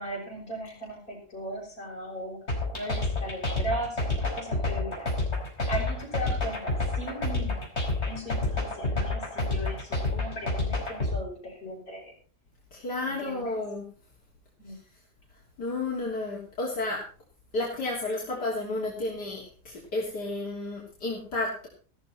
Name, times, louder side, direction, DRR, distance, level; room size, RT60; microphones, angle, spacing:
voice 1, 0.0-2.4 2.7-5.1 5.7-7.7 8.0-12.1 13.0-13.7 14.6-14.8, right 1 dB, 60° left, -2 dB, 7.1 m, -37 dB
sound 1, 2.5-11.1, left 2 dB, 40° left, 5.2 m, -28 dB
voice 2, 12.7-13.8 14.7-14.8 15.6-17.0 17.5-21.7, left 2 dB, 80° left, -3 dB, 3.8 m, -32 dB
16.0 x 13.5 x 4.4 m, 0.41 s
omnidirectional pair, 1.7 m